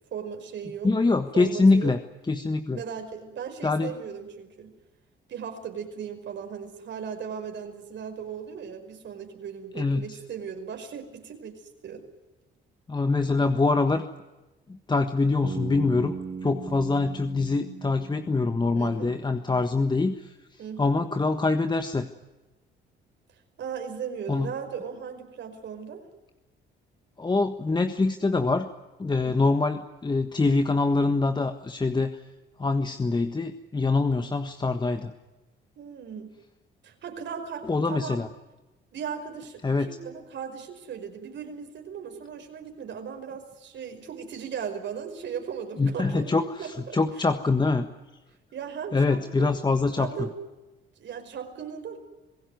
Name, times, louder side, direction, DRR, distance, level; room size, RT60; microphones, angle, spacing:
voice 1, 0.1-0.9 1.3-1.9 2.7-4.7 5.3-12.0 18.7-19.1 20.6-21.0 23.6-26.0 29.1-29.5 35.8-36.3 36.8-38.2 38.9-47.3 48.5-49.5 50.0-50.3 51.0-52.0, right 7 dB, 65° right, 5 dB, 5.3 m, -37 dB
voice 2, 0.8-2.0 2.3-2.8 3.6-3.9 9.8-10.2 12.9-14.0 14.7-16.1 16.4-20.3 20.8-22.1 24.3-24.5 27.2-28.7 29.0-32.2 32.6-35.1 37.7-38.3 39.6-39.9 45.8-47.9 48.9-50.3, left 3 dB, 20° left, 7 dB, 1.4 m, -24 dB
Bass guitar, 15.4-19.5, right 5 dB, 45° right, 2.1 m, -38 dB
26.5 x 17.0 x 9.5 m, 1.1 s
cardioid pair, 90°, 20 cm